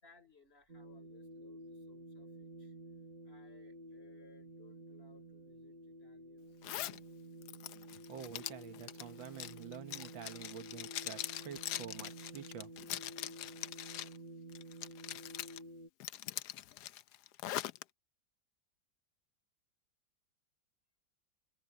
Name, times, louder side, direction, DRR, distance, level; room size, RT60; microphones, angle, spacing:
voice 1, 0.0-2.8 3.2-7.0, left 3 dB, 30° left, 4.2 m, -65 dB
sound 1, 0.7-15.9, right 1 dB, 30° right, 1.2 m, -51 dB
Zipper (clothing), 6.6-7.0 7.4-14.2 14.5-15.6 16.0-17.8, left 13 dB, 70° left, 1.1 m, -42 dB
voice 2, 8.1-12.9, right 8 dB, 85° right, 2.0 m, -48 dB
omnidirectional pair, 2.1 m